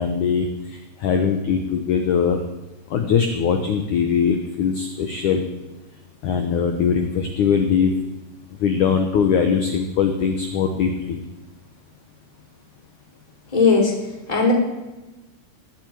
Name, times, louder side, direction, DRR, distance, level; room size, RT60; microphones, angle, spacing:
voice 1, 0.0-2.4 2.9-5.5 6.2-7.9 8.6-11.2, left 6 dB, 80° left, 6 dB, 1.7 m, -21 dB
voice 2, 13.5-13.9 14.3-14.5, left 4 dB, 10° left, -2 dB, 4.0 m, -16 dB
19.0 x 7.9 x 9.3 m, 1.1 s
omnidirectional pair, 5.2 m